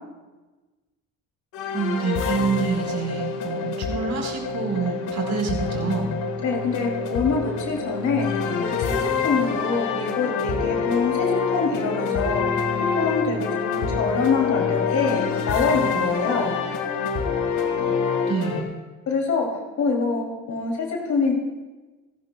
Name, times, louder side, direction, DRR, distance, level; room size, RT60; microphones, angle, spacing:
sound 1, 1.5-18.6, left 5 dB, 85° left, 1.7 m, -26 dB
voice 1, 1.7-6.1 17.8-17.9 18.3-18.7, right 5 dB, 65° right, 0 dB, 4.3 m, -27 dB
voice 2, 6.4-9.0 9.2-12.4 12.9-16.6 19.1-19.5 19.8-21.3, left 4 dB, 70° left, 0 dB, 2.8 m, -25 dB
28.0 x 12.0 x 2.3 m, 1.2 s
cardioid pair, 90°, 30 cm